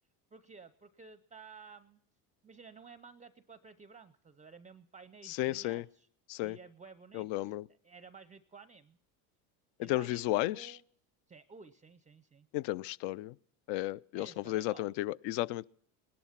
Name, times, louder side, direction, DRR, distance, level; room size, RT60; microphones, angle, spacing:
voice 1, 0.3-2.0 2.4-6.1 6.4-7.5 7.8-9.0 9.8-10.8 11.3-12.5 14.1-14.9, right 5 dB, 15° right, 0.5 m, -54 dB
voice 2, 5.3-5.8 6.3-6.6 7.1-7.7 9.9-10.7 12.5-13.3 13.7-15.7, left 17 dB, 65° left, 0.5 m, -33 dB
19.0 x 11.0 x 5.8 m
supercardioid pair, 90°, 46 cm